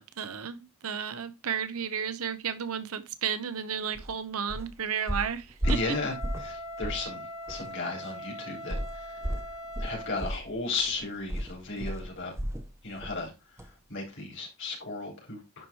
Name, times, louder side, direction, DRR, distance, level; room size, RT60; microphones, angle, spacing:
voice 1, 0.0-6.0, right 7 dB, 75° right, 0.7 m, -33 dB
sound 1, 3.9-4.1 4.5-4.7 5.1-6.5 6.8-7.1 7.5-7.6 8.7-12.7 13.0-13.2 13.6-13.7, equal, 15° right, 0.7 m, -33 dB
Wind instrument woodwind instrument, 5.6-10.2, left 1 dB, 75° left, 3.2 m, -41 dB
voice 2, 5.6-9.1 9.8-12.3 12.8-13.3 13.9-15.7, left 3 dB, 55° left, 4.4 m, -35 dB
10.5 x 4.6 x 3.2 m
head